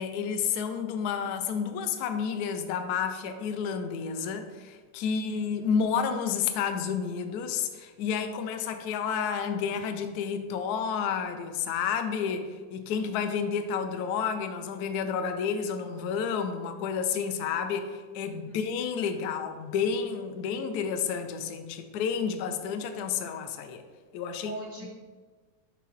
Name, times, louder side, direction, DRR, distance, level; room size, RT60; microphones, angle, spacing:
voice 1, 0.0-23.8 24.1-24.5, left 6 dB, 90° left, 7 dB, 0.8 m, -30 dB
voice 2, 5.1-5.4 18.3-18.6 24.4-24.9, right 2 dB, 80° right, -3 dB, 0.6 m, -42 dB
6.8 x 4.8 x 3.1 m, 1.4 s
omnidirectional pair, 2.3 m